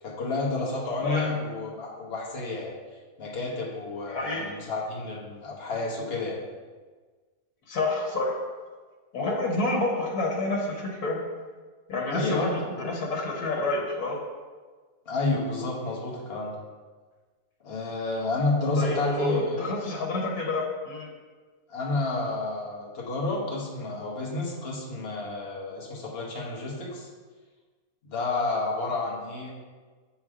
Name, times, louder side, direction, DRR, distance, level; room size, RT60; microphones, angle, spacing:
voice 1, 0.0-2.7 3.2-6.4 12.1-12.5 15.0-16.6 17.6-19.7 21.7-27.1 28.0-29.5, left 3 dB, 45° left, -3 dB, 1.4 m, -30 dB
voice 2, 4.1-4.5 7.7-8.4 9.1-11.2 11.9-14.2 18.8-21.1, left 2 dB, 90° left, -1 dB, 1.6 m, -28 dB
6.7 x 4.4 x 4.8 m, 1.4 s
omnidirectional pair, 1.5 m